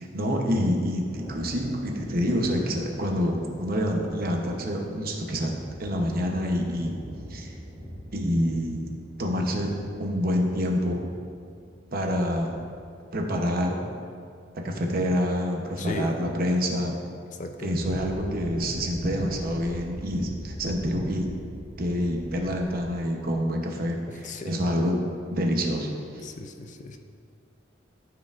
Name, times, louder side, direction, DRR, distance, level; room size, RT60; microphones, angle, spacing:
voice 1, 0.0-5.5 5.8-7.0 7.3-7.5 8.1-8.9 9.2-9.7 10.0-11.1 11.9-12.5 13.1-13.8 14.6-17.0 17.6-21.3 21.8-25.0 25.3-26.3, equal, 50° right, 1 dB, 0.9 m, -27 dB
Thunder, 1.1-12.7, equal, 30° right, 1.8 m, -44 dB
voice 2, 15.8-16.1 17.4-17.7 24.1-24.5 26.2-27.0, left 2 dB, 40° left, 6 dB, 0.4 m, -36 dB
sound 1, 17.8-23.0, equal, 65° left, 1.0 m, -41 dB
12.5 x 4.8 x 2.5 m, 2.3 s
head